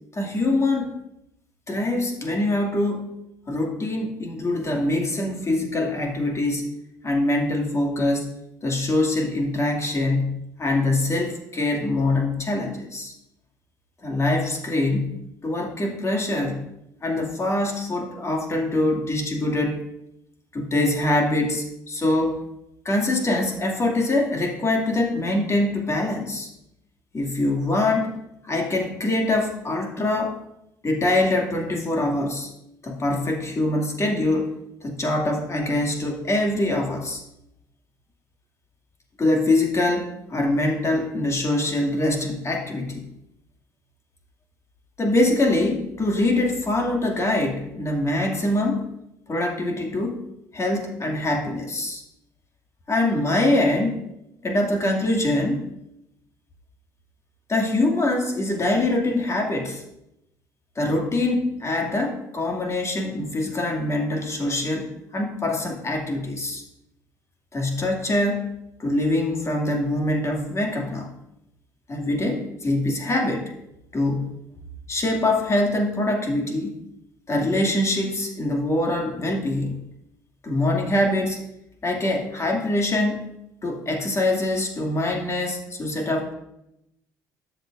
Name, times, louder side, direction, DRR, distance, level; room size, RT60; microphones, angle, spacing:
voice 1, 0.1-1.0 1.7-3.2 3.5-6.7 7.0-8.3 8.6-13.1 14.0-16.6 17.0-19.8 20.5-22.4 22.8-26.5 27.1-28.2 28.4-30.4 30.8-32.5 32.8-34.5 34.8-37.2 39.2-43.1 45.0-48.9 49.3-50.3 50.5-52.0 52.9-54.1 54.4-55.7 57.5-59.8 60.8-66.6 67.5-68.5 68.8-71.1 71.9-73.5 73.9-74.4 74.9-76.8 77.3-79.8 80.4-81.4 81.8-83.3 83.6-86.3, left 2 dB, 30° left, 1 dB, 2.5 m, -24 dB
13.0 x 10.0 x 2.6 m, 0.84 s
figure-of-eight pair, 55°, 10 cm